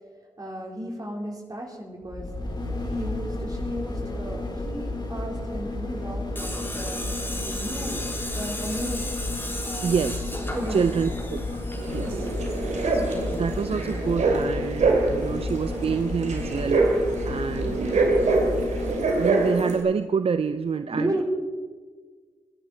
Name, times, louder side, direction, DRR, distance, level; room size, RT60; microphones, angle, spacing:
voice 1, 0.4-2.3 2.8-9.1 9.6-10.0 10.5-11.0 12.0-12.6 17.6-18.0 20.9-21.2, right 1 dB, 30° right, -1 dB, 4.3 m, -34 dB
sound 1, 2.0-19.4 19.8-19.9, left 2 dB, 35° left, 3.2 m, -32 dB
Tools, 6.4-14.1, left 1 dB, 15° left, 4.0 m, -36 dB
voice 2, 9.8-10.3 10.7-12.3 12.9-13.1 13.4-18.3 19.2-21.2, right 6 dB, 50° right, 11 dB, 0.5 m, -27 dB
sound 2, 11.8-19.8, right 3 dB, 75° right, 2.7 m, -25 dB
21.0 x 10.5 x 4.5 m, 1.5 s
supercardioid pair, 45°, 12 cm